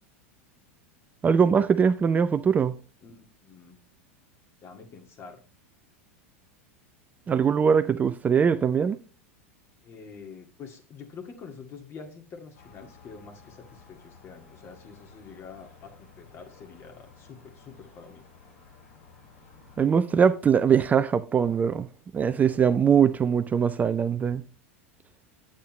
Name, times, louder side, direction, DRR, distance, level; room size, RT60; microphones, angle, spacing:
voice 1, 1.2-2.8 7.3-9.0 19.8-21.9 22.1-24.4, right 7 dB, 20° right, 0.4 m, -22 dB
voice 2, 3.0-3.8 4.6-5.4 9.8-18.3, left 5 dB, 35° left, 2.0 m, -46 dB
sound 1, 12.5-19.9, left 5 dB, 70° left, 4.5 m, -53 dB
8.6 x 8.5 x 3.1 m
hypercardioid pair, 95°, 7 cm